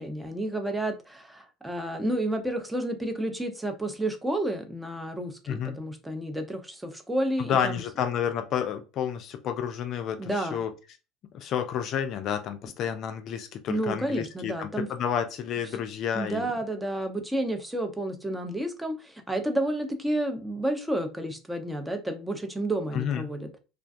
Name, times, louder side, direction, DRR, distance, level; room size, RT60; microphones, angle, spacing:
voice 1, 0.0-7.8 10.2-10.6 13.7-14.9 16.1-23.5, right 1 dB, 10° right, 0.6 m, -30 dB
voice 2, 5.5-5.8 7.5-10.7 11.3-16.5 22.9-23.3, left 8 dB, 55° left, 0.4 m, -30 dB
2.4 x 2.2 x 2.5 m
hypercardioid pair, 75°, 0 cm